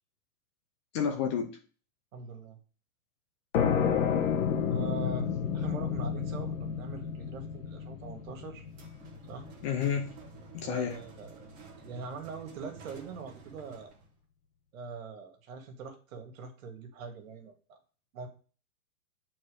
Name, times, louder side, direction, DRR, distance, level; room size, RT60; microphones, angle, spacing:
voice 1, 0.9-1.6 9.6-10.1 10.5-11.0, left 7 dB, 20° left, 5 dB, 0.5 m, -30 dB
voice 2, 2.1-2.6 4.7-8.7 9.3-9.5 10.6-11.5 11.8-13.9 14.7-17.8 18.1-18.3, right 4 dB, 70° right, 5 dB, 2.0 m, -43 dB
sound 1, 3.5-10.9, left 7 dB, 65° left, 1.4 m, -31 dB
sound 2, 8.7-14.1, right 5 dB, 25° right, 1.7 m, -51 dB
7.5 x 4.3 x 5.0 m, 0.40 s
supercardioid pair, 165°, 43 cm